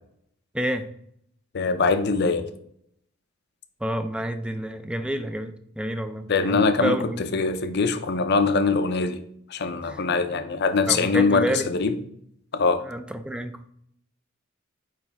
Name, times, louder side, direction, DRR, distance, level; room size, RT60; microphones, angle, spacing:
voice 1, 0.5-0.9 3.8-7.2 9.9-10.0 10.9-11.7 12.8-13.7, equal, 5° right, 0.4 m, -29 dB
voice 2, 1.5-2.5 6.3-9.2 9.5-11.9 12.5-12.8, left 4 dB, 55° left, 0.6 m, -23 dB
8.7 x 3.2 x 3.4 m
head